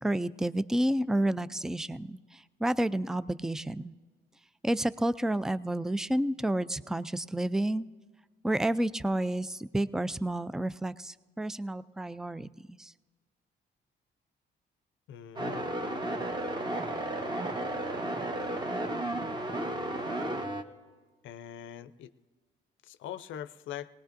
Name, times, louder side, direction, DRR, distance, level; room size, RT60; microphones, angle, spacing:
voice 1, 0.0-3.9 4.6-7.9 8.4-12.9, right 1 dB, 5° right, 15 dB, 0.3 m, -30 dB
voice 2, 15.1-15.7 21.2-22.1 22.9-23.9, left 10 dB, 75° left, 13 dB, 0.6 m, -42 dB
sound 1, 15.4-20.6, right 1 dB, 20° right, 1.1 m, -33 dB
20.5 x 18.5 x 2.6 m, 1.4 s
cardioid pair, 90°, 20 cm